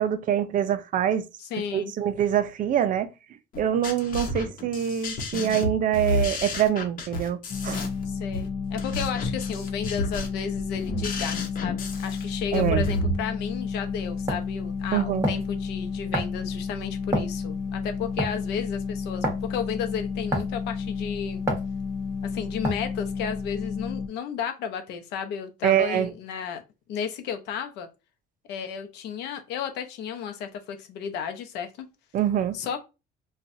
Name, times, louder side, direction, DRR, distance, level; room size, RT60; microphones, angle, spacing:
voice 1, 0.0-1.2 1.7-3.1 3.6-7.8 12.5-12.8 14.9-15.3 25.6-26.1 32.1-32.6, right 10 dB, 50° right, 0.5 m, -25 dB
voice 2, 1.4-1.9 7.9-21.4 22.2-26.6 26.9-27.9 28.5-31.9 32.5-32.8, left 7 dB, 90° left, 0.7 m, -33 dB
sound 1, 3.5-13.1, left 1 dB, 55° left, 0.9 m, -31 dB
sound 2, 7.5-24.1, left 5 dB, 40° left, 0.4 m, -31 dB
sound 3, 13.6-13.7 14.3-14.5 15.2-15.5 16.1-16.4 17.1-17.4 18.2-18.5 19.2-19.4 20.3-20.6 21.5-21.7 22.6-22.9, right 1 dB, 15° right, 1.2 m, -28 dB
4.3 x 2.4 x 2.5 m
cardioid pair, 110°, 17 cm